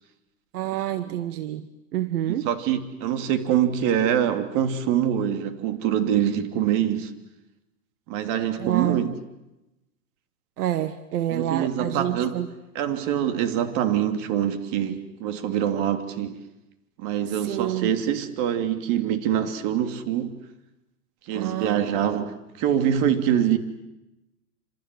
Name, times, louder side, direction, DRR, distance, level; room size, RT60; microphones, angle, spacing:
voice 1, 0.5-1.7 1.9-2.5 8.6-9.0 10.6-12.5 17.3-17.9 21.3-21.8, right 12 dB, 75° right, 1.6 m, -28 dB
voice 2, 2.4-7.1 8.1-9.1 11.3-12.4 12.7-16.4 17.0-20.3 21.3-23.6, right 10 dB, 40° right, 3.0 m, -24 dB
27.5 x 27.0 x 7.7 m
hypercardioid pair, 135°, 46 cm